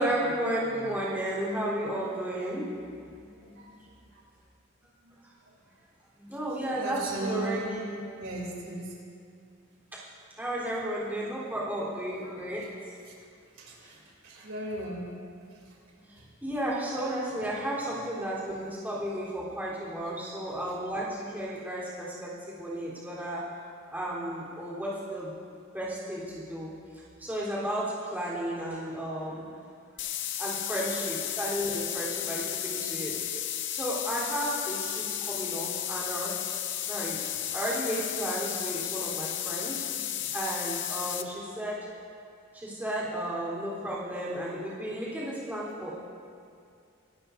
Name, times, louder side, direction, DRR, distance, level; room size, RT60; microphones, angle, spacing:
voice 1, 0.0-2.8 3.1-3.7 6.2-8.0 9.9-10.0 10.4-13.0 16.0-23.4 23.9-25.4 25.7-26.7 27.2-29.4 30.4-33.2 33.7-36.4 36.9-37.2 37.5-41.8 42.5-45.9, right 1 dB, 10° right, -7 dB, 3.6 m, -33 dB
voice 2, 6.7-7.7 8.1-8.9 13.6-14.0 14.4-15.2, right 2 dB, 80° right, -3 dB, 3.2 m, -35 dB
sound 1, 30.0-41.2, left 11 dB, 60° left, 0.6 m, -33 dB
25.5 x 12.5 x 2.7 m, 2.4 s
head